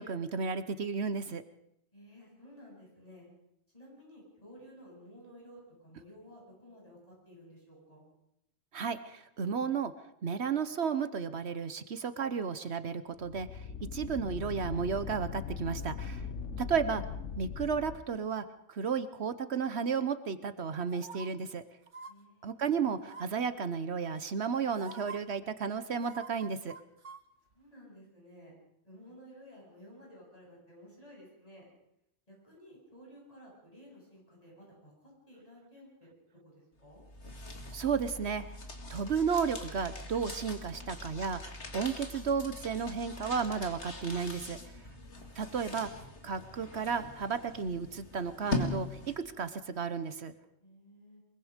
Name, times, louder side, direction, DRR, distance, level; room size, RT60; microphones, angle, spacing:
voice 1, 0.0-1.4 8.7-9.9 10.2-13.5 13.9-16.2 16.6-17.0 17.4-21.6 22.4-26.7 37.7-38.4 38.9-41.4 41.7-44.6 45.4-45.9 46.2-48.9 49.4-50.3, right 6 dB, 65° right, 12 dB, 1.2 m, -33 dB
voice 2, 1.9-3.3 3.7-8.0 22.1-22.6 27.5-28.5 28.8-31.7 32.3-34.9 35.3-36.1 36.4-37.0 44.8-45.3 50.6-51.2, equal, 30° left, -3 dB, 8.2 m, -54 dB
sound 1, 13.1-18.0, left 6 dB, 90° left, 1.4 m, -40 dB
sound 2, 20.9-21.3 21.9-22.1 23.0-23.4 24.3-24.4 24.7-25.2 25.9-27.2 27.5-27.6, right 5 dB, 85° right, 1.8 m, -46 dB
sound 3, 36.9-49.4, left 2 dB, 70° left, 2.6 m, -42 dB
23.5 x 22.5 x 5.1 m, 0.80 s
omnidirectional pair, 1.2 m